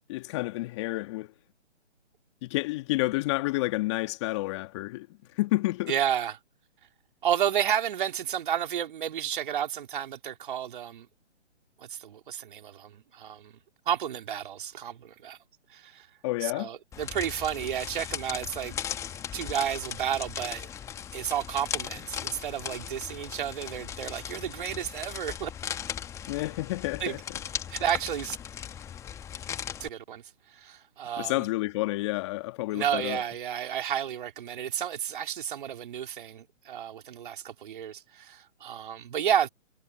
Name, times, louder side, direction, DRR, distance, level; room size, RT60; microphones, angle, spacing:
voice 1, 0.1-1.3 2.4-5.1 5.3-5.9 16.2-16.7 26.3-27.2 31.2-33.2, left 20 dB, 25° left, 1.7 m, -29 dB
voice 2, 5.9-6.4 7.2-11.1 11.8-13.6 13.9-15.4 15.7-16.1 16.4-18.8 19.3-20.7 21.1-25.5 27.0-27.2 27.7-28.4 29.8-31.5 32.7-39.5, right 9 dB, 45° right, 3.7 m, -31 dB
sound 1, 16.9-29.9, left 9 dB, 10° left, 1.4 m, -38 dB
figure-of-eight pair, 145°, 36 cm